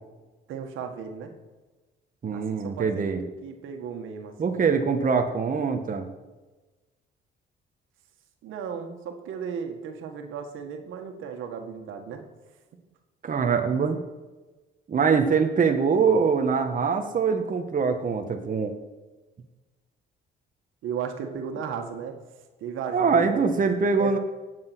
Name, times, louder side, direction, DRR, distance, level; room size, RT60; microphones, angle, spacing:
voice 1, 0.5-1.3 2.3-3.0 3.4-4.9 8.4-12.2 20.8-22.2 22.6-23.6 24.0-24.2, right 7 dB, 85° right, 5 dB, 1.9 m, -35 dB
voice 2, 2.2-3.2 4.4-6.1 13.2-14.0 14.9-18.7 22.9-24.2, right 5 dB, 40° right, 6 dB, 1.5 m, -23 dB
18.5 x 8.1 x 6.2 m, 1.2 s
cardioid pair, 90°, 20 cm